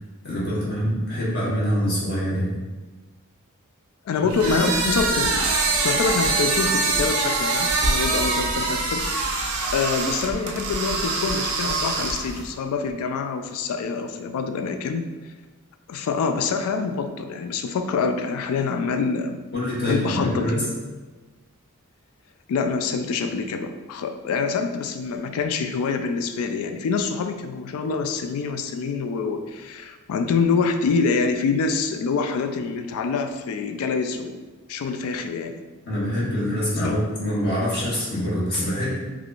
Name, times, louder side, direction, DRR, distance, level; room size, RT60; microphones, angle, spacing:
voice 1, 0.2-2.5 4.1-4.2 4.5-4.7 19.5-20.7 35.9-38.9, equal, 50° left, -7 dB, 1.0 m, -25 dB
voice 2, 4.1-5.5 5.8-9.1 9.4-15.0 15.9-19.4 19.8-20.6 22.5-34.4 34.7-35.6 36.8-36.9, left 5 dB, 80° left, 6 dB, 0.3 m, -26 dB
sound 1, 4.3-12.5, right 3 dB, 75° right, 0.5 m, -24 dB
3.4 x 2.4 x 2.4 m, 1.3 s
head